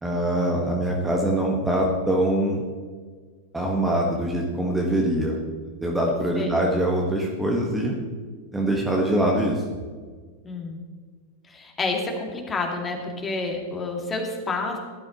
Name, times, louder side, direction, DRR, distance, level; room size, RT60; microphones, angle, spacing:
voice 1, 0.0-2.6 3.5-5.4 5.8-7.9 8.5-9.6, right 1 dB, 5° right, -1 dB, 1.6 m, -23 dB
voice 2, 10.4-10.8 11.5-14.8, left 3 dB, 20° left, 1 dB, 2.5 m, -29 dB
17.0 x 12.0 x 3.1 m, 1.5 s
figure-of-eight pair, 90°, 0 cm